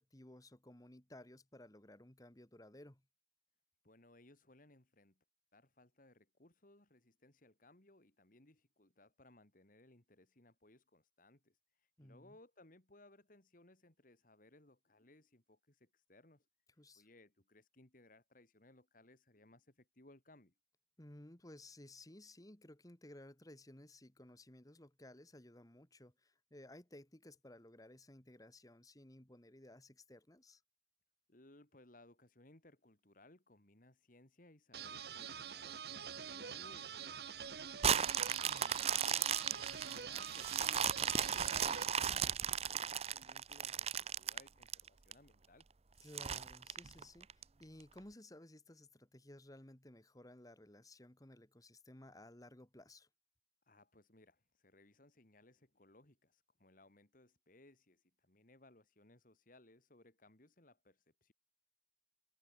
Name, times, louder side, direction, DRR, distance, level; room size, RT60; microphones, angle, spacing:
voice 1, 0.0-3.0 12.0-12.4 16.8-17.1 21.0-30.6 38.4-38.7 46.0-53.1, left 1 dB, 20° left, 1.8 m, -57 dB
voice 2, 3.8-5.2 5.5-16.5 16.9-20.5 31.3-38.2 38.6-45.7 53.6-61.3, left 2 dB, 50° left, 2.7 m, -64 dB
sound 1, 34.7-41.8, right 7 dB, 65° right, 1.2 m, -46 dB
sound 2, 37.8-45.1 45.6-45.7 46.2-47.4 48.0-48.1, right 8 dB, 35° right, 0.7 m, -36 dB
head